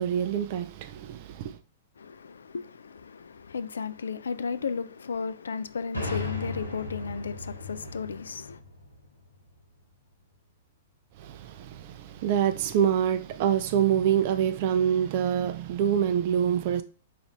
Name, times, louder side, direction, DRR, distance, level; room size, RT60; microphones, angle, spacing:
voice 1, 0.0-1.6 11.2-16.8, right 9 dB, 45° right, 0.5 m, -26 dB
voice 2, 2.0-8.6, left 5 dB, 70° left, 0.3 m, -34 dB
sound 1, 5.9-9.6, left 2 dB, 85° left, 0.8 m, -37 dB
4.8 x 2.5 x 3.1 m
figure-of-eight pair, 105°, 0 cm